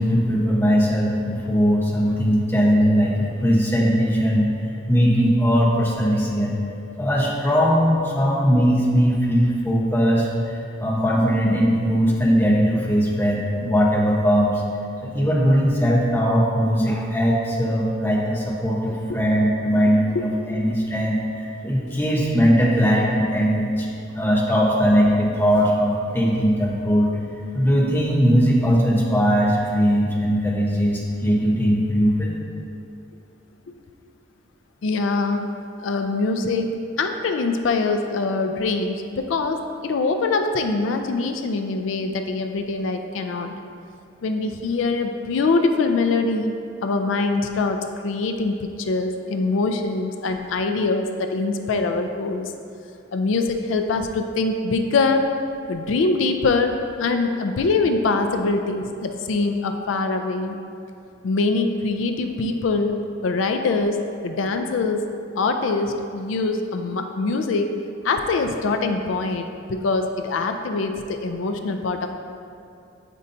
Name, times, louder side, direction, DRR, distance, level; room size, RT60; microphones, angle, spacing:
voice 1, 0.0-6.6 7.0-14.6 15.0-23.9 24.1-27.1 27.5-32.3, equal, 10° left, -4 dB, 0.9 m, -20 dB
voice 2, 34.8-35.5 35.8-36.7 37.0-43.5 44.2-46.5 46.8-52.4 53.1-55.2 55.7-60.6 61.2-65.1 65.3-67.7 68.0-72.1, left 3 dB, 90° left, 6 dB, 0.4 m, -23 dB
8.3 x 5.4 x 2.6 m, 2.5 s
head